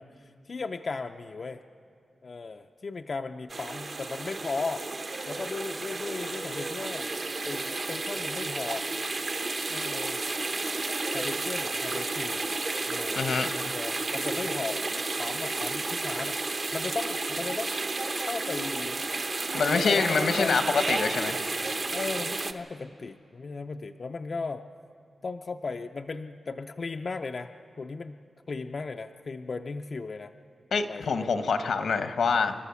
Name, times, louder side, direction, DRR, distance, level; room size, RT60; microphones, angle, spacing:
voice 1, 0.0-1.6 2.2-4.9 5.3-7.1 7.4-8.9 9.7-10.2 11.1-12.6 12.9-14.9 15.2-19.0 19.7-20.6 21.9-24.6 25.2-27.5 27.8-28.2 28.5-30.3 30.9-31.3, left 4 dB, 45° left, 6 dB, 0.4 m, -36 dB
sound 1, 3.5-22.5, right 3 dB, 40° right, 0.8 m, -32 dB
voice 2, 13.1-13.5 19.5-21.4 30.7-32.5, left 5 dB, 80° left, 8 dB, 1.1 m, -26 dB
29.5 x 12.5 x 7.0 m, 2.4 s
wide cardioid pair, 155°, 0 cm